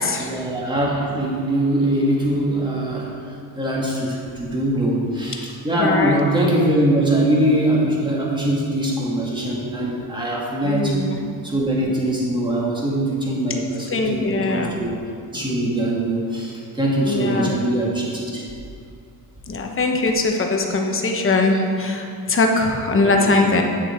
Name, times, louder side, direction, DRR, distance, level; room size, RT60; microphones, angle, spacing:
voice 1, 0.0-11.1 11.4-14.9 15.3-18.5 22.9-23.3, right 1 dB, 10° right, -4 dB, 1.8 m, -22 dB
voice 2, 5.8-6.2 10.6-11.2 13.9-14.8 17.0-17.6 19.5-23.6, left 3 dB, 35° left, 2 dB, 1.0 m, -21 dB
9.3 x 6.7 x 4.4 m, 2.4 s
cardioid pair, 120°, 37 cm